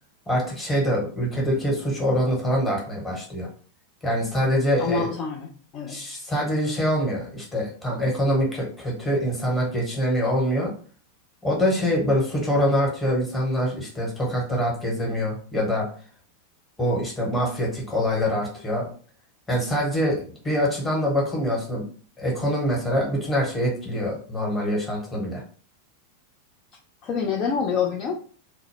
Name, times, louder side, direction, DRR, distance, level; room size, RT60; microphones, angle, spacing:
voice 1, 0.3-3.5 4.0-5.1 5.9-10.7 11.4-15.8 16.8-18.9 19.5-21.8 22.2-25.4, equal, 15° left, -3 dB, 1.1 m, -24 dB
voice 2, 4.8-6.0 27.0-28.1, left 5 dB, 35° left, -1 dB, 0.4 m, -26 dB
2.2 x 2.0 x 3.4 m, 0.42 s
figure-of-eight pair, 90°, 0 cm